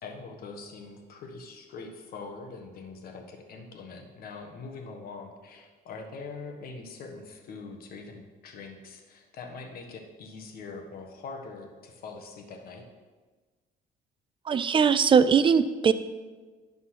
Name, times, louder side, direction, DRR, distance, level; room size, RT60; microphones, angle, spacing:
voice 1, 0.0-12.8, left 4 dB, 60° left, 3 dB, 1.4 m, -43 dB
voice 2, 14.5-15.9, right 6 dB, 30° right, 13 dB, 0.4 m, -20 dB
11.5 x 4.1 x 5.8 m, 1.4 s
cardioid pair, 110°, 17 cm